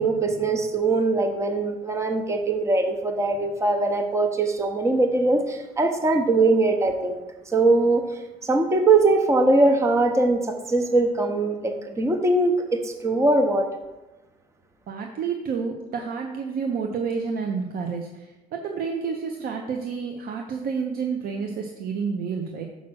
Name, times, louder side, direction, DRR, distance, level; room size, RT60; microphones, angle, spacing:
voice 1, 0.0-13.7, right 2 dB, 15° right, 5 dB, 0.7 m, -21 dB
voice 2, 14.9-22.6, right 5 dB, 60° right, 3 dB, 0.8 m, -29 dB
6.2 x 5.4 x 6.2 m, 1.1 s
cardioid pair, 110°, 17 cm